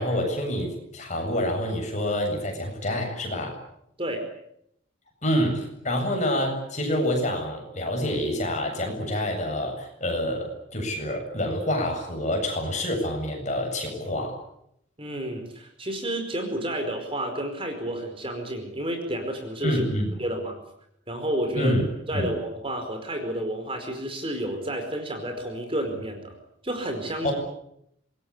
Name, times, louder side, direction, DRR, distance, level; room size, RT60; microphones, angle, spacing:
voice 1, 0.0-3.6 5.2-14.4 19.6-20.1 21.5-22.3 27.2-27.3, equal, 35° left, 2 dB, 7.9 m, -27 dB
voice 2, 15.0-19.8 20.2-20.6 21.1-21.8 22.1-26.3 26.6-27.3, right 1 dB, 25° right, 6 dB, 4.9 m, -30 dB
27.0 x 21.5 x 8.6 m, 0.75 s
head